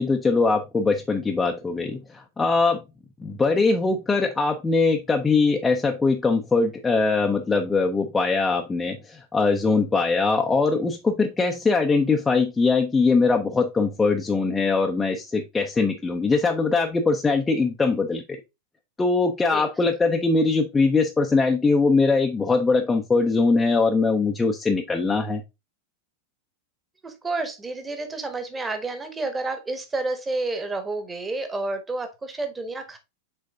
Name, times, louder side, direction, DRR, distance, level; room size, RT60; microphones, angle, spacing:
voice 1, 0.0-2.8 3.2-18.2 19.0-25.4, left 4 dB, 10° left, 2 dB, 0.7 m, -22 dB
voice 2, 27.0-33.0, right 2 dB, 15° right, 7 dB, 1.4 m, -30 dB
6.6 x 4.4 x 3.6 m, 0.24 s
figure-of-eight pair, 90°, 0 cm